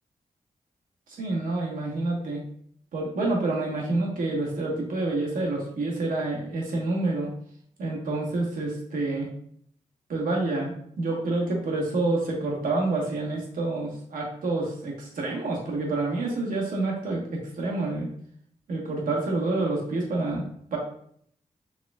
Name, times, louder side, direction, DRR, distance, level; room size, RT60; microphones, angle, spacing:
voice 1, 1.2-2.4 2.9-7.3 7.8-9.3 10.1-17.2 17.6-18.1 18.7-20.8, right 2 dB, 75° right, -2 dB, 1.1 m, -28 dB
4.8 x 3.1 x 2.3 m, 0.65 s
supercardioid pair, 45°, 14 cm